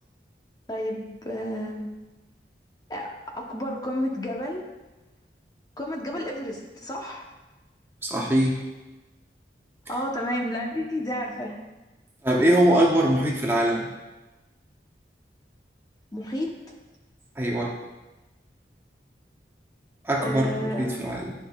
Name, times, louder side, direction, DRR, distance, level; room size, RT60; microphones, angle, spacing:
voice 1, 0.7-1.9 2.9-4.6 5.8-7.3 9.9-11.6 16.1-16.5 20.2-21.0, equal, 20° left, 0 dB, 0.8 m, -31 dB
voice 2, 8.0-8.6 12.2-13.9 17.4-17.7 20.0-21.3, right 1 dB, 15° right, -2 dB, 0.7 m, -22 dB
11.0 x 5.4 x 2.3 m, 1.1 s
head